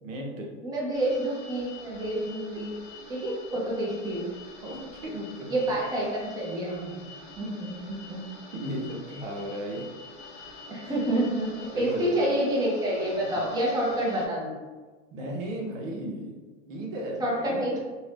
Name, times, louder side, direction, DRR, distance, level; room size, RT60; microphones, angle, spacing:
voice 1, 0.0-0.5 2.7-2.8 4.6-5.8 8.5-9.9 10.8-11.1 11.7-12.3 13.3-13.4 13.9-14.0 15.1-16.4 16.7-17.8, right 1 dB, 85° right, 0 dB, 0.8 m, -36 dB
voice 2, 0.6-2.8 3.1-4.2 5.5-6.1 6.3-7.0 7.4-8.2 10.7-14.6 17.2-17.8, right 1 dB, 10° right, -4 dB, 0.6 m, -28 dB
sound 1, 0.9-14.3, left 3 dB, 60° left, 0.9 m, -46 dB
2.7 x 2.2 x 3.3 m, 1.3 s
supercardioid pair, 125°, 38 cm